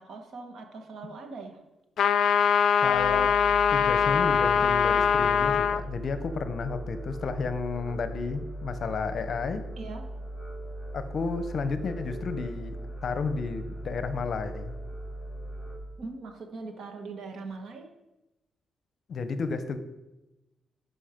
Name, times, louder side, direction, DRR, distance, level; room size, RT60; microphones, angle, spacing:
voice 1, 0.0-1.6 9.7-10.1 16.0-17.9, right 3 dB, 60° right, 5 dB, 1.4 m, -41 dB
sound 1, 2.0-5.8, left 7 dB, 65° left, 0.4 m, -22 dB
voice 2, 2.8-3.4 3.7-9.7 10.9-14.7 19.1-19.8, left 4 dB, 50° left, 10 dB, 0.8 m, -32 dB
sound 2, 2.8-15.8, right 1 dB, 5° left, 3.9 m, -39 dB
11.5 x 5.6 x 5.1 m, 0.99 s
cardioid pair, 140°, 0 cm